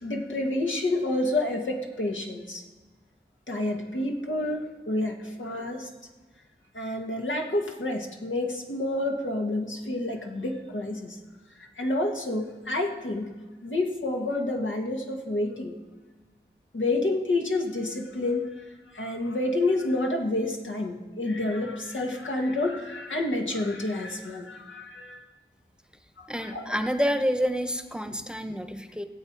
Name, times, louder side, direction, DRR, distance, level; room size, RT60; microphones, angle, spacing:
voice 1, 0.0-2.6 3.5-5.9 6.7-11.2 11.8-13.3 13.6-15.8 16.7-18.5 18.9-25.2 26.2-26.8, left 2 dB, 80° left, 1 dB, 1.8 m, -29 dB
voice 2, 26.3-29.1, equal, 5° right, 8 dB, 1.0 m, -28 dB
20.0 x 7.8 x 4.7 m, 1.2 s
cardioid pair, 40°, 19 cm